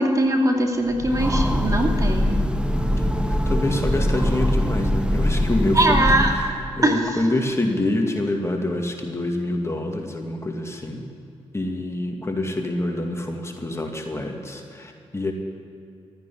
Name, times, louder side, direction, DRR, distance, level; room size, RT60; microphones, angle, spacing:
voice 1, 0.0-2.3 5.8-6.3 6.8-7.0, right 1 dB, 30° right, 2 dB, 2.4 m, -20 dB
Train, 0.9-6.6, equal, 10° right, 1.1 m, -22 dB
voice 2, 2.7-11.1 11.5-15.3, left 1 dB, 25° left, 2 dB, 2.2 m, -27 dB
14.0 x 9.6 x 10.0 m, 2.6 s
supercardioid pair, 55°, 12 cm